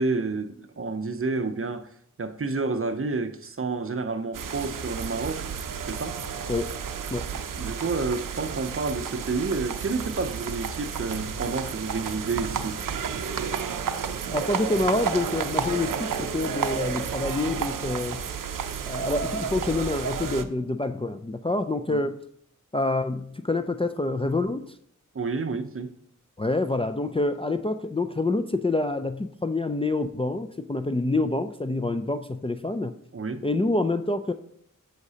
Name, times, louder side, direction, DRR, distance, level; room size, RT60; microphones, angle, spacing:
voice 1, 0.0-1.9 2.2-5.5 5.9-6.2 7.5-12.8 21.9-22.1 25.1-26.0 33.1-33.4, right 3 dB, 45° right, 0.6 m, -29 dB
sound 1, 4.3-20.4, right 7 dB, 80° right, 0.6 m, -31 dB
voice 2, 14.3-18.2 18.9-22.2 22.7-24.7 26.4-32.9 33.4-34.3, left 2 dB, 20° left, 0.4 m, -27 dB
7.9 x 6.4 x 2.8 m
wide cardioid pair, 60°, 32 cm